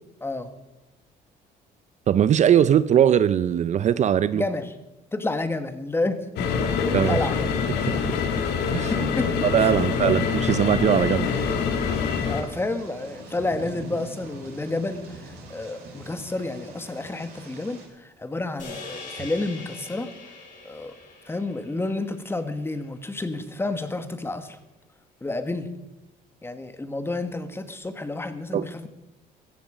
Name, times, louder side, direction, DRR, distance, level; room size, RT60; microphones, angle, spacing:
voice 1, 0.2-0.5 4.3-4.7 5.1-6.5 7.1-7.4 8.9-10.1 12.3-20.1 20.6-20.9 21.3-24.6 25.2-25.7 26.4-28.9, left 2 dB, 15° left, 9 dB, 1.5 m, -30 dB
voice 2, 2.1-4.4 6.9-7.2 7.8-8.0 8.7-9.1 9.4-11.3 28.5-28.7, right 9 dB, 45° right, 16 dB, 0.5 m, -20 dB
sound 1, 6.4-12.4, left 6 dB, 80° left, 2.2 m, -25 dB
Thunder / Rain, 11.2-17.9, right 2 dB, 65° right, 6.6 m, -43 dB
sound 2, 18.6-23.0, left 3 dB, 50° left, 5.7 m, -42 dB
16.0 x 14.5 x 5.0 m, 1.0 s
cardioid pair, 110°, 17 cm